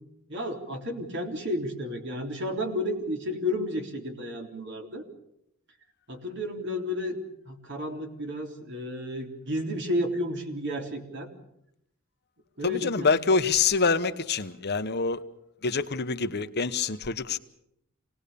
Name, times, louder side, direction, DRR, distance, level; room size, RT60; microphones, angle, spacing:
voice 1, 0.3-5.1 6.1-11.3 12.6-13.2, left 1 dB, 60° right, 3 dB, 3.7 m, -32 dB
voice 2, 12.6-15.2 15.6-17.4, left 4 dB, 50° left, 10 dB, 1.1 m, -26 dB
27.0 x 19.0 x 7.0 m, 0.79 s
head